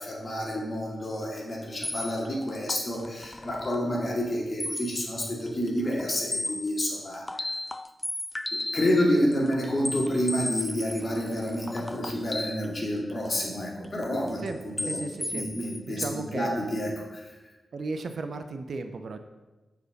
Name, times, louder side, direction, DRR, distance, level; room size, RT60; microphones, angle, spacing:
voice 1, 0.0-7.5 8.7-15.0 15.3-17.3, equal, 45° left, -2 dB, 2.4 m, -29 dB
sound 1, 1.4-1.5 1.8-3.8 4.6-5.1 5.5-6.8 7.1-9.0 9.3-13.4 13.8-14.5 14.8-15.8, left 2 dB, 20° left, 0.3 m, -35 dB
voice 2, 14.4-15.4 15.9-16.6 17.7-19.2, right 3 dB, 70° right, 8 dB, 0.6 m, -35 dB
6.5 x 4.9 x 6.5 m, 1.1 s
cardioid pair, 60°, 0 cm